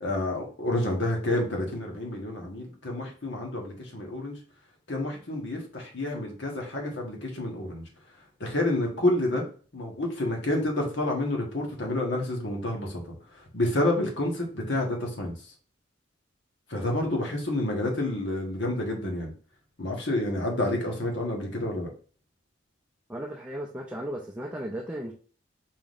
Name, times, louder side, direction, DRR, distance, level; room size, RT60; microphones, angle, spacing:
voice 1, 0.0-4.4 4.9-7.8 8.4-9.4 9.7-15.3 16.7-19.3 19.8-21.9, left 1 dB, 65° left, 0 dB, 1.3 m, -29 dB
voice 2, 23.1-25.1, right 1 dB, 10° right, -3 dB, 0.5 m, -35 dB
4.7 x 3.6 x 2.5 m, 0.40 s
head